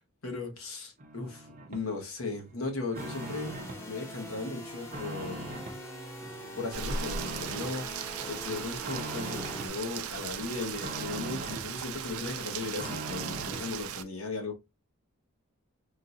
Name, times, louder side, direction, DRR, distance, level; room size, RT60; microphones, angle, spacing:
voice 1, 0.2-3.6 3.9-5.5 6.5-7.9 8.2-14.6, left 3 dB, 75° left, 1.1 m, -37 dB
sound 1, 1.0-1.9 2.3-3.9 4.2-5.8 6.2-7.8 8.2-9.8 10.1-11.7 12.1-13.7, right 2 dB, 35° right, 0.6 m, -41 dB
sound 2, 2.9-9.7, equal, 10° left, 0.7 m, -43 dB
Rain, 6.7-14.0, right 7 dB, 85° right, 0.4 m, -38 dB
3.7 x 2.5 x 2.7 m
head